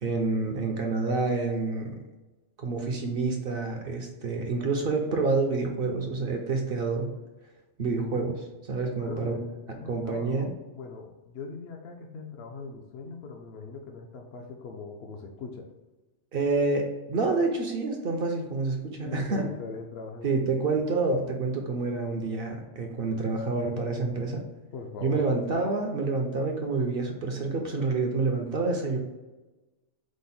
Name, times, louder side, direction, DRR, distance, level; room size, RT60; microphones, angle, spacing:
voice 1, 0.0-2.0 2.6-7.1 7.8-9.4 9.9-10.5 16.3-19.5 20.2-24.4 25.0-29.0, right 3 dB, 55° right, 2 dB, 0.7 m, -28 dB
voice 2, 9.0-10.5 10.7-15.7 19.0-20.3 24.7-25.4, left 4 dB, 65° left, 2 dB, 0.7 m, -40 dB
5.0 x 2.0 x 4.0 m, 1.1 s
omnidirectional pair, 1.3 m